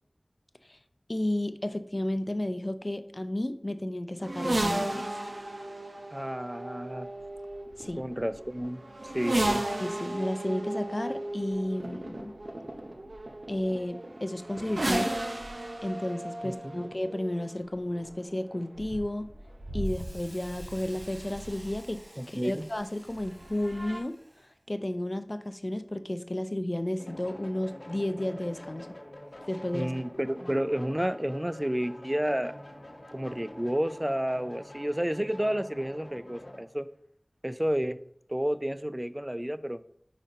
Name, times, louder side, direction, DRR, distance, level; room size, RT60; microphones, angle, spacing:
voice 1, 1.1-5.1 7.8-8.1 9.8-12.3 13.5-15.2 15.8-19.3 19.7-22.0 22.3-28.9 29.5-29.9, left 1 dB, 45° left, 10 dB, 0.5 m, -32 dB
sound 1, 4.2-22.0 23.1-24.0, right 1 dB, 90° right, 0.7 m, -35 dB
voice 2, 6.1-7.1 8.0-8.8 9.1-9.6 16.4-16.8 22.2-22.7 29.7-32.5 33.1-36.9 37.4-38.0 38.3-39.8, equal, 15° right, 13 dB, 0.4 m, -31 dB
Hiss, 19.8-24.6, right 1 dB, 45° right, 1.0 m, -53 dB
sound 2, 27.0-36.6, left 1 dB, 75° left, 1.1 m, -46 dB
5.1 x 4.2 x 5.0 m, 0.65 s
wide cardioid pair, 40°, 0 cm